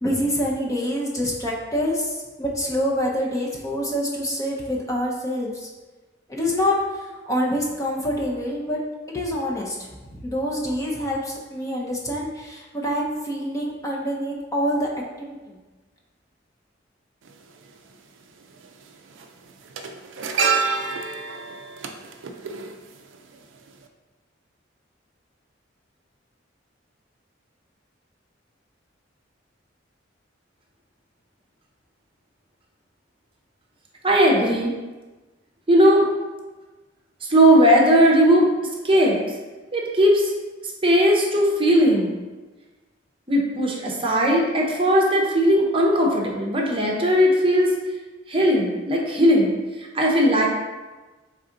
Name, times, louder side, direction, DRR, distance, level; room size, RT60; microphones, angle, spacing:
voice 1, 0.0-5.7 6.3-8.8 9.1-9.8 10.1-14.9 15.2-15.6, equal, 20° left, -3 dB, 0.5 m, -26 dB
sound 1, 17.2-17.3 18.6-18.8 19.1-23.4 23.7-23.8, right 5 dB, 80° right, 0.4 m, -27 dB
voice 2, 34.0-34.7 35.7-36.1 37.2-38.5 38.8-39.2 39.7-40.3 40.8-42.1 43.3-47.7 48.3-49.5 49.8-50.5, equal, 30° right, -1 dB, 0.7 m, -18 dB
4.0 x 3.3 x 3.8 m, 1.2 s
head